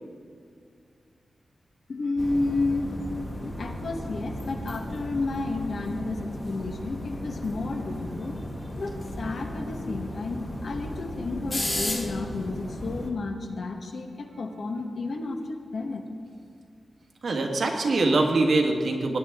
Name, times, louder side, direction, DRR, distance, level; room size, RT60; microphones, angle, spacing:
voice 1, 1.9-3.0 3.4-8.4 8.8-16.0, left 3 dB, 60° left, 4 dB, 1.2 m, -31 dB
sound 1, 2.2-13.1, left 1 dB, 25° left, 1.6 m, -35 dB
voice 2, 17.2-19.2, right 2 dB, 60° right, 2 dB, 1.5 m, -23 dB
18.0 x 9.9 x 3.6 m, 2.3 s
wide cardioid pair, 160°, 0 cm